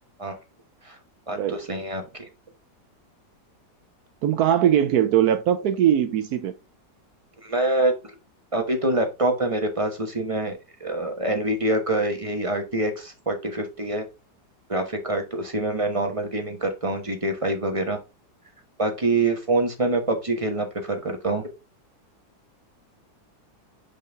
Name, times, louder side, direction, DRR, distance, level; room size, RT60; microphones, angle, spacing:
voice 1, 1.3-2.3 7.4-7.9 8.5-14.0 14.7-18.0 18.8-21.5, right 2 dB, 25° right, 0.8 m, -25 dB
voice 2, 4.2-6.5, right 10 dB, 70° right, 1.0 m, -20 dB
5.4 x 5.4 x 3.4 m
omnidirectional pair, 1.9 m